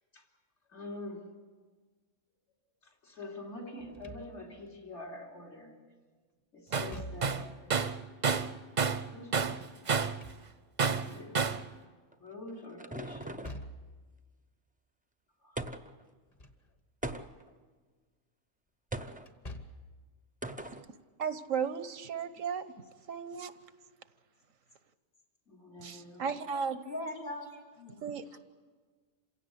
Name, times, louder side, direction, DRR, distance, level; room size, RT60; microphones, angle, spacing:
voice 1, 0.7-1.3 2.8-5.8 6.5-7.7 9.1-9.7 11.0-11.5 12.2-13.5 15.4-15.6 25.5-26.3, left 2 dB, 60° left, 0 dB, 3.3 m, -46 dB
Slam / Thump thud, 3.8-4.7 6.7-7.6 9.9-10.9 13.2-14.0 16.1-16.7 17.1-17.2 19.2-20.0, left 1 dB, 30° left, 1.4 m, -46 dB
Tools, 6.7-6.9 7.2-9.1 9.3-10.2 10.8-11.7, right 5 dB, 40° right, 0.8 m, -29 dB
sound 1, 12.1-13.7 15.6-16.0 17.0-17.6 18.9-19.3 20.4-20.9, right 2 dB, 10° right, 0.5 m, -40 dB
voice 2, 21.2-22.6 23.1-23.5 25.8-26.8 28.0-28.2, right 6 dB, 90° right, 12 dB, 1.4 m, -34 dB
voice 3, 26.9-28.4, left 1 dB, 80° left, -1 dB, 3.9 m, -41 dB
27.5 x 16.5 x 8.3 m, 1.5 s
omnidirectional pair, 1.3 m